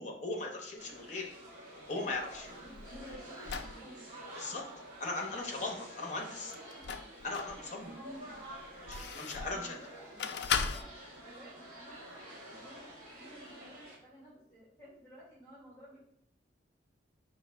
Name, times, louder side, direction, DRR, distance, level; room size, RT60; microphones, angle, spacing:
voice 1, 0.0-1.3 1.9-2.5 4.4-4.6 5.0-6.5 7.2-8.0 8.8-9.7, left 2 dB, 40° left, 0 dB, 0.8 m, -38 dB
sound 1, 0.8-14.0, right 1 dB, 40° right, 1.6 m, -49 dB
voice 2, 1.9-4.0 6.0-6.8 7.8-8.4 9.5-10.9 11.2-16.0, equal, 10° left, -10 dB, 1.7 m, -54 dB
sound 2, 2.1-3.8 6.5-7.6 8.1-9.6 10.2-10.8, left 6 dB, 65° left, 0.3 m, -37 dB
4.8 x 2.8 x 3.2 m, 0.77 s
head